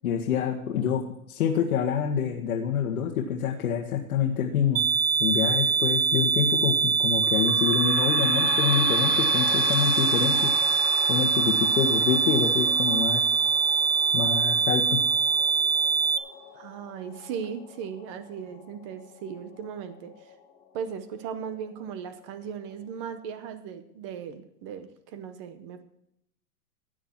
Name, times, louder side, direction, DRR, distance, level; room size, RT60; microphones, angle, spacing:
voice 1, 0.0-4.8 5.2-10.5 11.1-13.2 14.1-15.0, left 8 dB, 75° left, 0 dB, 1.8 m, -27 dB
sound 1, 4.8-16.2, right 5 dB, 65° right, 0.9 m, -23 dB
sound 2, 7.2-20.4 21.0-21.1 21.3-21.4 22.2-22.3, left 8 dB, 25° left, 1.4 m, -38 dB
voice 2, 16.5-20.3 20.7-25.8, right 7 dB, 20° right, 11 dB, 0.7 m, -37 dB
15.5 x 9.2 x 4.5 m, 0.78 s
supercardioid pair, 175°, 45 cm